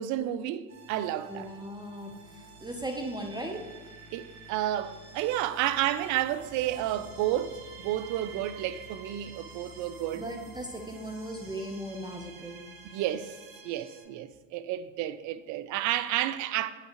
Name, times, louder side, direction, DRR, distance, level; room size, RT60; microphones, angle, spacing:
voice 1, 0.0-1.5 4.1-10.3 12.9-13.3 13.6-16.7, right 13 dB, 50° right, 0.5 m, -31 dB
sound 1, 0.7-14.0, right 2 dB, 85° right, 1.5 m, -49 dB
voice 2, 1.3-3.7 10.1-12.7, right 1 dB, 10° right, 0.7 m, -38 dB
9.1 x 5.7 x 3.0 m
hypercardioid pair, 90°, 39 cm